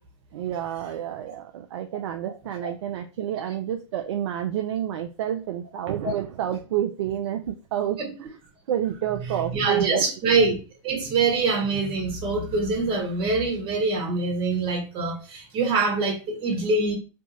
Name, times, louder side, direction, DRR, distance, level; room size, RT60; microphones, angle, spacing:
voice 1, 0.3-8.0 8.7-10.0, right 11 dB, 55° right, 0.4 m, -29 dB
voice 2, 9.2-10.6 10.8-17.0, right 3 dB, 30° right, 1.4 m, -24 dB
3.3 x 2.7 x 2.7 m
figure-of-eight pair, 100°, 17 cm